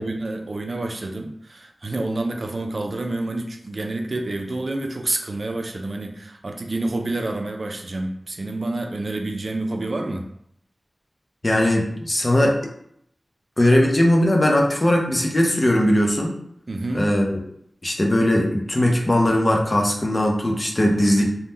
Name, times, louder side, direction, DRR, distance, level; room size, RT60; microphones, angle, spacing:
voice 1, 0.0-10.2 16.7-17.1, right 2 dB, 55° right, 3 dB, 0.4 m, -28 dB
voice 2, 11.4-12.6 13.6-16.4 16.9-17.4 17.8-21.2, left 1 dB, 35° left, 1 dB, 0.6 m, -19 dB
2.6 x 2.2 x 3.5 m, 0.71 s
wide cardioid pair, 65°, 0 cm